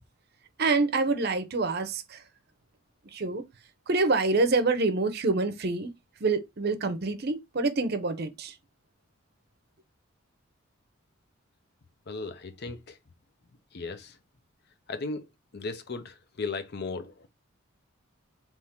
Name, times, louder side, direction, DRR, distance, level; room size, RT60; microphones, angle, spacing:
voice 1, 0.6-2.2 3.1-3.4 3.9-5.9 6.2-8.5, right 3 dB, 50° right, 0.6 m, -26 dB
voice 2, 12.1-13.0 13.7-14.2 14.9-15.3 15.5-17.3, left 3 dB, 50° left, 0.6 m, -36 dB
3.6 x 2.9 x 4.2 m
head